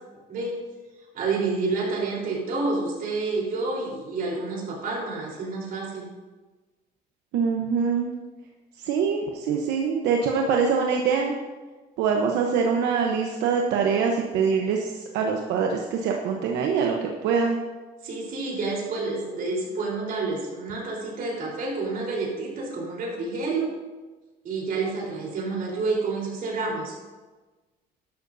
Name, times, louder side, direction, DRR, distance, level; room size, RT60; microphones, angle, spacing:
voice 1, 1.1-6.1 18.0-23.8 24.4-27.0, right 3 dB, 60° right, -2 dB, 4.0 m, -29 dB
voice 2, 7.3-8.1 8.8-11.3 12.0-17.6, right 6 dB, 90° right, 1 dB, 1.0 m, -24 dB
12.5 x 11.5 x 2.7 m, 1.3 s
cardioid pair, 110°, 17 cm